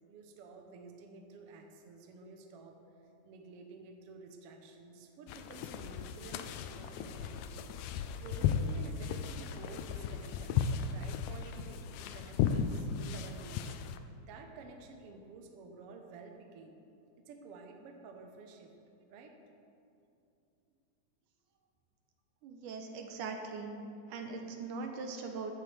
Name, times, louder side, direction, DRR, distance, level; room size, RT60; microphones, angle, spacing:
voice 1, 0.1-2.8 3.2-7.7 8.2-13.8 14.2-16.8 17.3-18.7 19.1-19.3, right 4 dB, 65° right, 3 dB, 1.6 m, -51 dB
sound 1, 5.3-14.0, left 7 dB, 80° left, 1.8 m, -35 dB
voice 2, 22.4-23.8 24.1-25.5, right 4 dB, 85° right, 4 dB, 2.4 m, -41 dB
14.5 x 11.0 x 3.4 m, 2.6 s
omnidirectional pair, 3.6 m